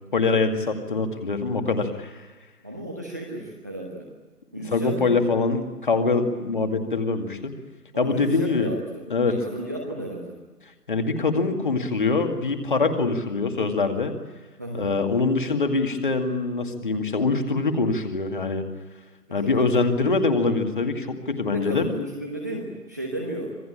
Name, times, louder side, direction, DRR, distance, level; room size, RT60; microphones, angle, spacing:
voice 1, 0.1-2.3 4.6-7.5 8.0-8.7 9.1-9.4 10.9-14.1 14.8-18.7 19.3-21.9, left 3 dB, 30° left, 6 dB, 2.2 m, -24 dB
voice 2, 2.6-4.1 4.5-5.2 7.9-10.4 14.6-14.9 19.3-19.8 21.5-23.6, right 1 dB, 10° right, 0 dB, 1.1 m, -34 dB
26.0 x 19.0 x 8.8 m, 1.2 s
figure-of-eight pair, 155°, 47 cm